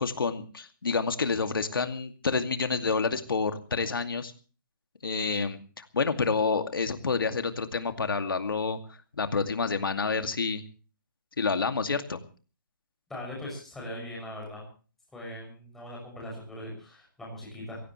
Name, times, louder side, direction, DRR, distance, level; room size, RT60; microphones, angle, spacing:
voice 1, 0.0-4.3 5.0-10.6 11.4-12.2, left 4 dB, 85° left, 8 dB, 2.3 m, -28 dB
voice 2, 13.1-14.6 15.1-17.8, left 1 dB, 5° left, -3 dB, 6.8 m, -40 dB
23.5 x 17.0 x 3.2 m, 0.37 s
hypercardioid pair, 170°, 11 cm